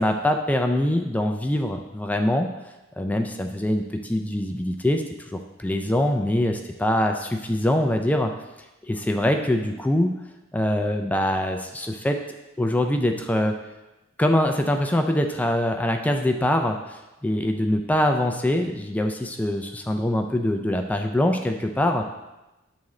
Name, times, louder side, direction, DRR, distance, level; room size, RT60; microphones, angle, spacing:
voice 1, 0.0-2.5 3.0-8.3 8.9-10.1 10.5-12.2 12.6-13.6 14.2-22.0, left 1 dB, 10° left, 4 dB, 0.3 m, -23 dB
8.6 x 3.6 x 3.1 m, 1.0 s
head